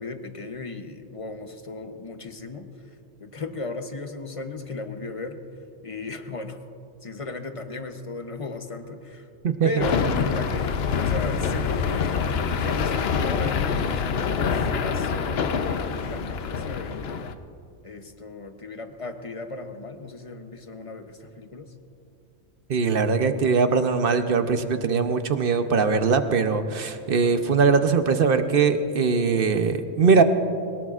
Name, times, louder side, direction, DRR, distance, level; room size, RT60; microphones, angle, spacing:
voice 1, 0.0-2.7 3.2-5.4 5.8-6.6 7.0-9.3 9.6-12.3 12.6-17.2 17.8-21.7, left 3 dB, 35° left, 7 dB, 0.8 m, -36 dB
voice 2, 9.4-9.8 22.7-30.2, right 5 dB, 55° right, 8 dB, 0.9 m, -21 dB
sound 1, 9.8-17.3, left 6 dB, 65° left, 0.9 m, -25 dB
22.0 x 19.5 x 2.5 m, 2.7 s
omnidirectional pair, 1.2 m